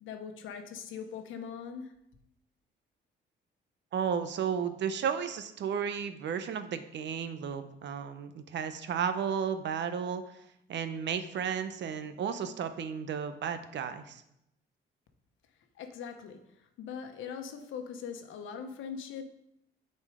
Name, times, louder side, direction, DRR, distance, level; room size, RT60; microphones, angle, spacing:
voice 1, 0.0-1.9 15.7-19.2, left 7 dB, 80° left, 6 dB, 1.1 m, -41 dB
voice 2, 3.9-10.4 10.7-14.2, right 7 dB, 65° right, 10 dB, 0.8 m, -33 dB
8.6 x 4.5 x 4.9 m, 0.79 s
cardioid pair, 90°, 20 cm